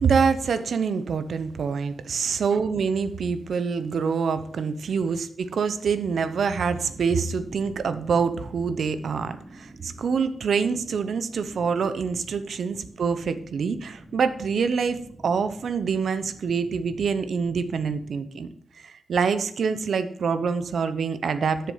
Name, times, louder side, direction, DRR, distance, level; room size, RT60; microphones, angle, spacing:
voice 1, 0.0-18.5 18.8-21.7, right 5 dB, 70° right, 11 dB, 0.8 m, -26 dB
sound 1, 6.1-18.1, right 2 dB, 40° right, 1.3 m, -48 dB
10.5 x 6.8 x 5.6 m, 0.63 s
wide cardioid pair, 155°, 0 cm